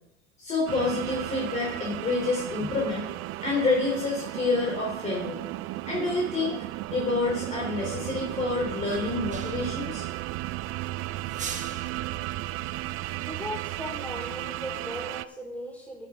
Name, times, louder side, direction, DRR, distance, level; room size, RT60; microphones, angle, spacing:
voice 1, 0.4-3.1 3.4-5.4 5.9-6.6 6.9-10.0, left 3 dB, 25° left, -3 dB, 3.2 m, -28 dB
sound 1, 0.7-15.3, right 16 dB, 45° right, 0.5 m, -34 dB
Brushes Reverb, 9.3-9.9 11.2-12.1, right 6 dB, 25° right, 1.4 m, -39 dB
voice 2, 13.2-16.1, equal, 5° left, -3 dB, 4.9 m, -37 dB
13.0 x 9.9 x 3.6 m, 0.86 s
supercardioid pair, 130°, 30 cm